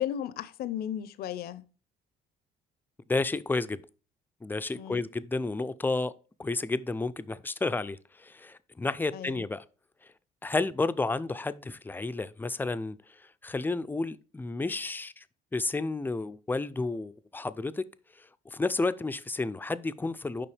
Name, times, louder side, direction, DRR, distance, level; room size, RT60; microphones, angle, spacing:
voice 1, 0.0-1.7 4.7-5.0 9.1-9.4, left 10 dB, 65° left, 0.6 m, -34 dB
voice 2, 3.1-3.8 4.4-6.1 6.4-9.6 10.4-13.0 13.4-15.2 15.5-17.9 18.2-20.5, left 3 dB, 10° left, 0.4 m, -31 dB
6.9 x 5.3 x 3.3 m
cardioid pair, 110°, 17 cm